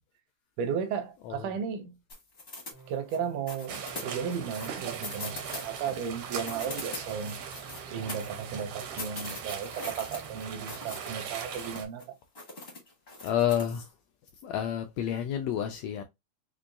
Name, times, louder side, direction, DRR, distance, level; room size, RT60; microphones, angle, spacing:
voice 1, 0.6-2.0 2.9-7.4 7.9-12.2, right 7 dB, 90° right, 2.2 m, -35 dB
sound 1, 2.1-3.2 3.5-6.1 6.4-8.6 9.0-11.1 11.4-12.0 12.3-13.8, left 2 dB, 60° left, 0.6 m, -42 dB
sound 2, 2.7-9.1, right 5 dB, 55° right, 0.3 m, -52 dB
sound 3, 3.7-11.9, right 7 dB, 70° right, 1.4 m, -40 dB
voice 2, 13.2-13.9 14.4-16.0, left 10 dB, 85° left, 1.5 m, -29 dB
5.6 x 2.2 x 2.4 m
omnidirectional pair, 3.5 m